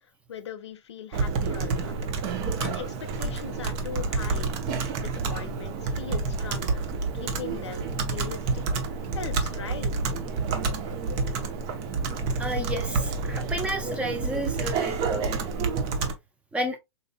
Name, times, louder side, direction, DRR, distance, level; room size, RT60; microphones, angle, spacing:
voice 1, 0.3-2.0 2.6-2.9 3.2-4.6 5.0-8.6 9.1-9.9, left 7 dB, 70° left, 0.6 m, -39 dB
Computer keyboard, 1.1-16.1, right 4 dB, 40° right, 0.8 m, -29 dB
voice 2, 12.4-15.5 16.5-16.8, equal, 10° right, 0.7 m, -31 dB
4.1 x 2.5 x 2.2 m
hypercardioid pair, 115°, 15 cm